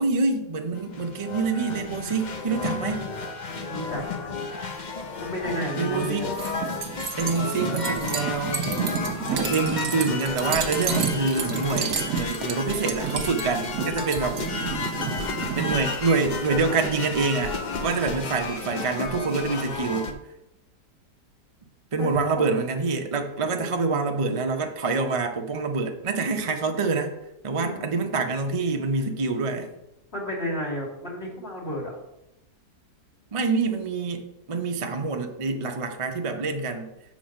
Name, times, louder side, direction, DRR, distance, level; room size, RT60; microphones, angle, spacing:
voice 1, 0.0-3.1 5.8-6.3 7.2-8.7 9.5-14.4 15.6-20.1 21.9-27.1 27.4-29.7 33.3-36.9, right 4 dB, 45° right, 4 dB, 0.4 m, -26 dB
sound 1, 0.8-20.1, left 3 dB, 55° left, 0.5 m, -32 dB
voice 2, 3.5-4.4 5.2-6.3 14.1-14.9 19.5-20.1 22.0-22.4 23.5-24.1 27.6-27.9 30.1-32.0, equal, 40° left, -4 dB, 2.7 m, -33 dB
sound 2, 6.3-15.8, right 6 dB, 70° right, 1.5 m, -30 dB
7.3 x 4.1 x 6.4 m, 0.87 s
omnidirectional pair, 1.8 m